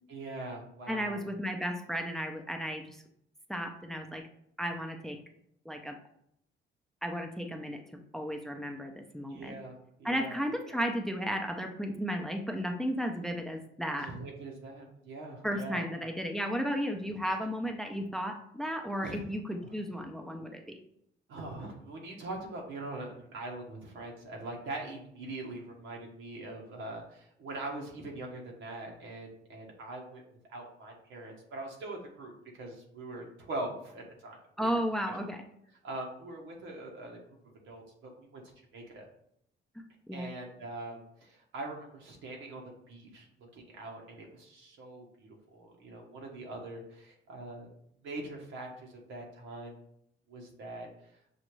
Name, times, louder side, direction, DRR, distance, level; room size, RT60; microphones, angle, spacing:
voice 1, 0.1-1.3 9.3-10.4 10.6-10.8 13.9-15.8 19.0-19.2 19.9-20.1 21.3-30.2 30.5-34.8 35.8-37.2 37.7-38.4 38.7-39.1 40.1-43.3 43.5-47.7 48.0-49.7 50.3-50.9, right 2 dB, 90° right, 0 dB, 1.1 m, -42 dB
voice 2, 0.9-3.0 3.5-4.3 4.6-5.2 5.7-6.0 7.0-9.6 10.0-14.1 15.4-20.8 34.6-35.4 39.8-40.3, equal, ahead, 4 dB, 0.5 m, -34 dB
6.2 x 2.5 x 3.1 m, 0.73 s
cardioid pair, 90°, 20 cm